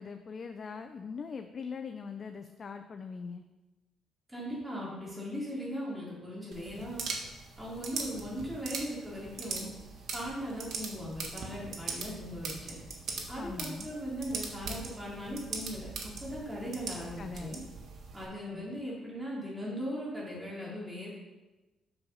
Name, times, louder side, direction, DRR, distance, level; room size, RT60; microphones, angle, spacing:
voice 1, 0.0-3.4 13.4-13.9 17.2-17.5 18.5-18.6, left 5 dB, 45° left, 7 dB, 0.5 m, -41 dB
voice 2, 4.3-7.0 7.6-9.7 10.1-12.8 13.3-17.6 18.1-21.1, equal, 10° right, -6 dB, 3.4 m, -39 dB
sound 1, 6.5-18.2, right 4 dB, 65° right, 1.5 m, -41 dB
7.1 x 6.9 x 5.5 m, 1.1 s
cardioid pair, 90°, 0 cm